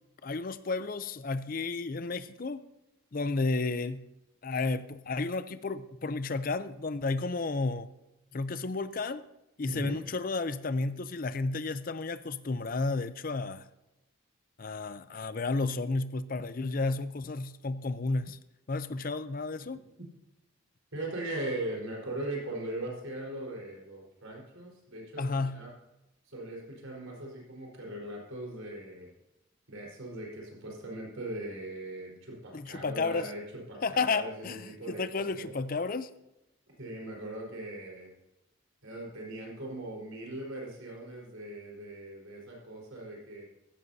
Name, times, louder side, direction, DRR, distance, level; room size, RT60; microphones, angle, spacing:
voice 1, 0.2-2.7 3.1-4.1 4.4-7.9 8.3-9.3 9.6-13.7 14.6-18.4 18.7-19.8 25.2-25.6 32.5-33.3 33.8-36.1, left 3 dB, 40° left, 0.5 m, -32 dB
voice 2, 9.7-10.0 20.0-20.1 20.9-25.7 26.2-29.1 29.7-33.4 33.7-35.5 36.8-38.1 38.8-43.4, right 1 dB, 85° right, 4.4 m, -40 dB
15.5 x 14.5 x 2.8 m
head